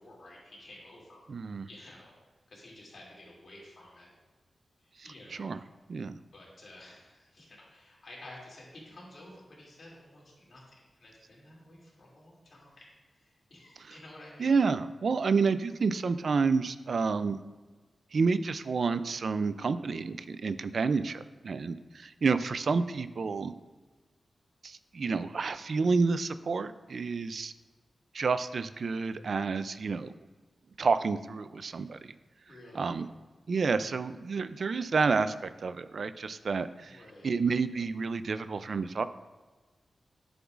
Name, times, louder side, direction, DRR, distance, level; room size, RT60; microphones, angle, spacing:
voice 1, 0.0-1.3 1.7-2.1 2.5-4.1 4.8-5.6 6.3-12.9 13.2-14.6 32.5-32.9 36.8-37.3, left 1 dB, 60° left, -4 dB, 2.6 m, -52 dB
voice 2, 1.3-1.7 5.0-5.6 5.9-6.2 13.9-14.0 14.4-17.4 18.1-23.5 24.6-27.5 28.1-30.1 30.8-32.1 32.7-33.1 33.5-39.1, right 4 dB, 60° right, 12 dB, 0.4 m, -29 dB
11.0 x 7.0 x 2.5 m, 1.3 s
wide cardioid pair, 100°, 0 cm